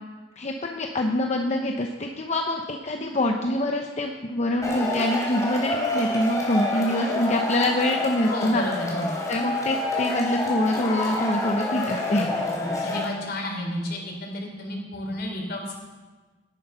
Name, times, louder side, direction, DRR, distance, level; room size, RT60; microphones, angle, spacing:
voice 1, 0.4-8.6 9.3-12.3, left 1 dB, 40° left, 2 dB, 0.9 m, -25 dB
Male speech man speaking / Shout / Clapping, 4.6-13.0, left 2 dB, 20° left, 3.6 m, -28 dB
voice 2, 8.3-9.1 12.8-15.8, left 1 dB, 60° left, 1 dB, 3.8 m, -31 dB
17.5 x 10.0 x 5.7 m, 1.3 s
head